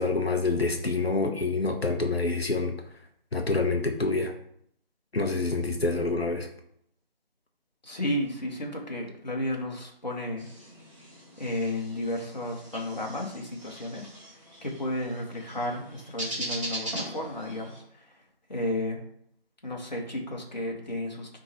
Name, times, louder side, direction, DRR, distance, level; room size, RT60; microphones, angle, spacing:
voice 1, 0.0-2.7 3.3-4.3 5.1-6.5, left 3 dB, 85° left, 3 dB, 1.0 m, -27 dB
voice 2, 7.8-10.5 11.4-14.1 14.6-18.2 18.5-19.0 19.6-21.4, left 1 dB, 45° left, -1 dB, 1.5 m, -33 dB
sound 1, 10.4-17.8, right 1 dB, 35° right, 2.5 m, -40 dB
8.7 x 3.8 x 3.0 m, 0.70 s
figure-of-eight pair, 170°, 30 cm